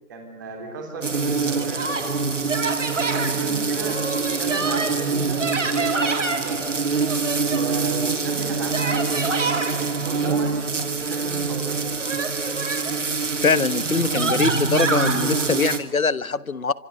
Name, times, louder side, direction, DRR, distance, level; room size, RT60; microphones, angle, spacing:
voice 1, 0.1-2.1 2.9-6.6 7.5-11.9 13.8-15.2, right 3 dB, 10° right, 2 dB, 3.0 m, -34 dB
sound 1, 1.0-15.8, right 4 dB, 50° right, 3.0 m, -24 dB
voice 2, 13.4-16.7, left 4 dB, 60° left, 17 dB, 1.3 m, -22 dB
28.5 x 26.0 x 7.0 m, 0.95 s
figure-of-eight pair, 165°, 48 cm